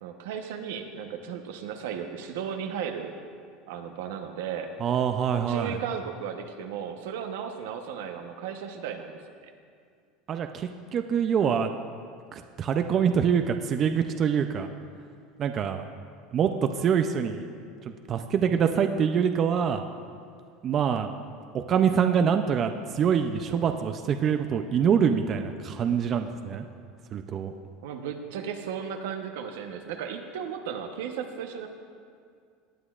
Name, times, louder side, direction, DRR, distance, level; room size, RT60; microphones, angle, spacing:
voice 1, 0.0-3.1 3.7-4.7 5.5-9.5 27.8-31.7, right 7 dB, 80° right, 5 dB, 0.9 m, -35 dB
voice 2, 4.8-5.8 10.3-11.7 12.3-14.7 15.4-15.8 16.3-16.5 16.8-17.4 18.1-19.8 20.6-21.1 21.5-26.6 27.1-27.5, right 7 dB, 35° right, 7 dB, 0.4 m, -25 dB
18.0 x 9.8 x 2.4 m, 2.2 s
supercardioid pair, 130°, 0 cm